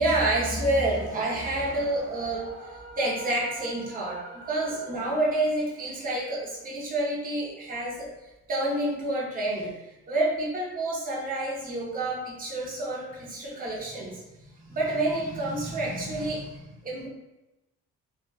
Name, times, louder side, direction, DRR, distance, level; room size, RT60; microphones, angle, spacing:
voice 1, 0.0-14.2 14.6-17.1, right 1 dB, 30° right, -4 dB, 0.7 m, -29 dB
sound 1, 0.5-6.6, right 2 dB, 65° right, 0.7 m, -45 dB
2.6 x 2.3 x 2.3 m, 0.97 s
cardioid pair, 90°, 30 cm